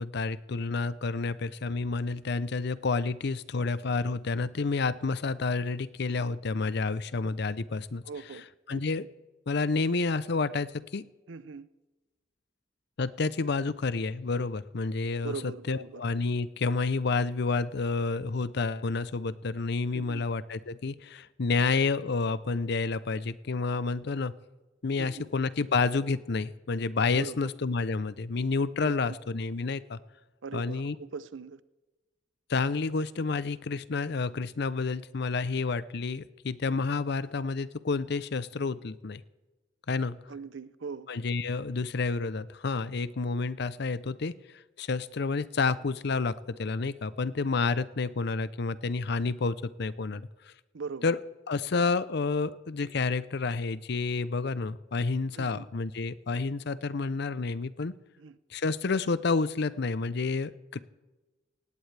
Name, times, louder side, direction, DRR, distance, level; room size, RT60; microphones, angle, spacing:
voice 1, 0.0-8.0 8.7-9.0 9.5-11.1 13.0-24.4 24.8-30.0 30.5-30.9 32.5-39.2 39.9-40.2 41.1-50.3 51.0-51.2 51.5-57.9 58.5-60.8, left 4 dB, 60° left, 16 dB, 0.6 m, -29 dB
voice 2, 8.0-8.8 11.3-11.7 15.2-16.0 19.9-20.3 25.0-25.3 27.1-27.5 28.8-29.2 30.4-31.6 40.3-41.1 50.7-51.1 55.4-55.7 58.2-58.4, right 5 dB, 90° right, 16 dB, 0.6 m, -41 dB
18.5 x 17.0 x 3.4 m, 1.1 s
head